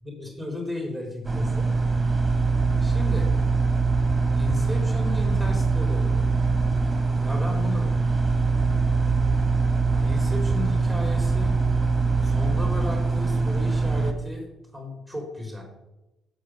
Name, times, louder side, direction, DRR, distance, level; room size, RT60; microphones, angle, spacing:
voice 1, 0.2-1.7 2.8-3.3 4.3-6.3 7.2-7.9 9.9-11.6 12.2-14.5 14.7-15.6, left 2 dB, 5° left, 1 dB, 3.9 m, -34 dB
sound 1, 1.2-14.1, right 4 dB, 20° right, 1.8 m, -23 dB
15.5 x 6.1 x 6.5 m, 0.97 s
figure-of-eight pair, 45°, 0 cm